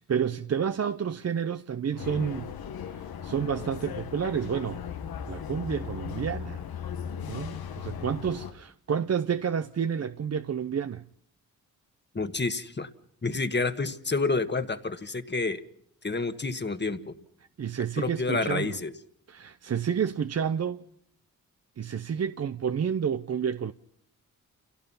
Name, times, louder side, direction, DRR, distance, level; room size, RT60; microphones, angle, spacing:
voice 1, 0.0-2.5 2.9-4.8 5.3-6.6 7.3-11.0 17.6-18.8 19.3-20.8 21.8-23.7, right 7 dB, 45° right, 0.7 m, -30 dB
sound 1, 2.0-8.5, left 8 dB, 85° left, 1.4 m, -37 dB
voice 2, 12.1-12.9 13.2-15.6 16.0-17.1 18.0-18.9, left 3 dB, 30° left, 1.6 m, -29 dB
28.0 x 17.5 x 5.7 m
cardioid pair, 70°, 35 cm